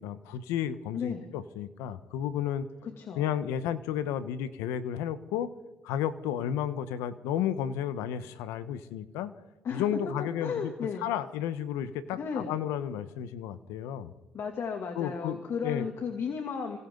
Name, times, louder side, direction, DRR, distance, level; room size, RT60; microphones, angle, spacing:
voice 1, 0.0-2.7 3.1-5.5 5.8-9.3 9.7-10.7 11.0-14.1 14.9-15.9, left 10 dB, 90° left, 12 dB, 1.2 m, -32 dB
voice 2, 0.9-1.3 2.8-3.3 9.6-9.9 10.2-11.1 12.1-12.6 14.3-16.8, left 6 dB, 60° left, 3 dB, 2.8 m, -34 dB
28.5 x 26.0 x 4.0 m, 1.1 s
supercardioid pair, 70°, 5 cm